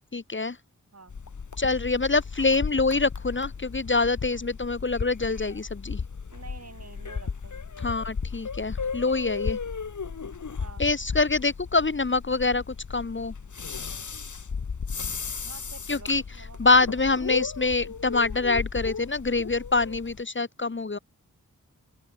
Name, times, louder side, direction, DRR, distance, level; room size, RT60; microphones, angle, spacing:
voice 1, 0.1-0.6 1.6-6.0 7.8-9.6 10.8-13.3 15.9-16.2 16.6-21.0, left 3 dB, 35° left, 1.3 m, -25 dB
sound 1, 1.1-20.2, left 5 dB, 65° left, 2.1 m, -35 dB
voice 2, 6.3-7.6 10.6-10.8 15.4-16.7 16.9-17.7, right 4 dB, 55° right, 6.8 m, -48 dB
open air
wide cardioid pair, 90°, 32 cm